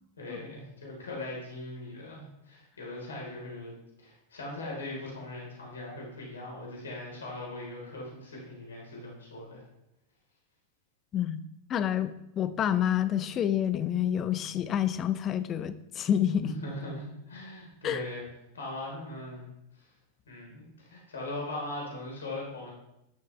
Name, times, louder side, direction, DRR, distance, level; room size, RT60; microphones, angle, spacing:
voice 1, 0.2-9.6 16.4-18.3 18.5-19.9 20.3-22.7, left 1 dB, 70° left, -2 dB, 4.1 m, -40 dB
voice 2, 11.7-16.6 17.8-18.0, left 10 dB, 30° left, 14 dB, 0.7 m, -28 dB
13.5 x 11.0 x 3.3 m, 0.85 s
figure-of-eight pair, 90°, 0 cm